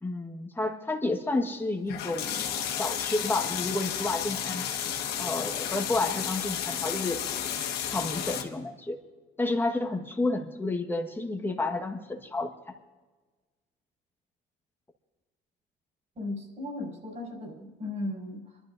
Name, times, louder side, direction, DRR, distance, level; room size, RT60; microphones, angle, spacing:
voice 1, 0.0-4.6 5.2-7.2 7.8-9.0 9.4-12.5, left 2 dB, 10° left, 4 dB, 1.5 m, -30 dB
sound 1, 1.9-8.4, left 9 dB, 75° left, 1.5 m, -32 dB
voice 2, 16.1-18.4, left 2 dB, 45° right, 0 dB, 4.9 m, -36 dB
28.0 x 12.0 x 2.7 m, 1.3 s
cardioid pair, 110°, 17 cm